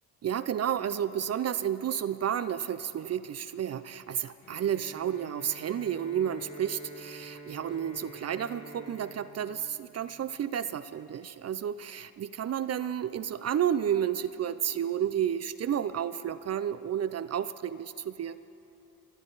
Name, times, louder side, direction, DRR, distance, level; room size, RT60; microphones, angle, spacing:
voice 1, 0.2-18.4, right 9 dB, 45° right, 14 dB, 0.4 m, -31 dB
Bowed string instrument, 4.4-10.4, right 2 dB, 70° left, 2.0 m, -48 dB
27.5 x 9.2 x 4.0 m, 2.9 s
cardioid pair, 75°, 37 cm